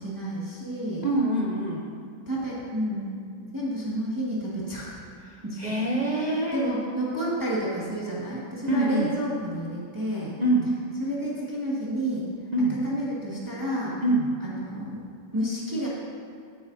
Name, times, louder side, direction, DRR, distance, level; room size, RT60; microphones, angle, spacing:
voice 1, 0.0-1.0 2.3-3.1 3.4-5.0 5.4-5.9 6.5-10.3 11.0-12.2 12.8-13.9 14.4-15.0 15.3-15.9, equal, 10° right, -7 dB, 1.9 m, -30 dB
voice 2, 1.0-1.9 5.2-6.7 8.7-9.2 10.4-10.7 12.5-12.8 14.0-14.3, right 1 dB, 60° right, -3 dB, 0.4 m, -25 dB
15.5 x 9.8 x 2.7 m, 2.2 s
omnidirectional pair, 2.1 m